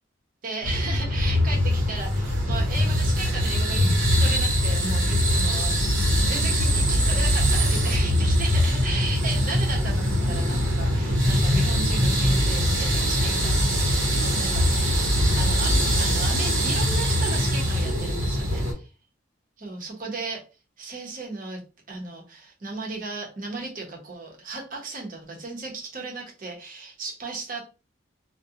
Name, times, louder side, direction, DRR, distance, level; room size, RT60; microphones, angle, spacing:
voice 1, 0.4-15.1 15.4-18.6 19.6-20.4 20.8-21.6 21.9-27.6, right 3 dB, 45° right, -1 dB, 0.8 m, -35 dB
sound 1, 0.6-18.7, equal, 80° right, 1.0 m, -22 dB
2.4 x 2.2 x 2.7 m, 0.32 s
head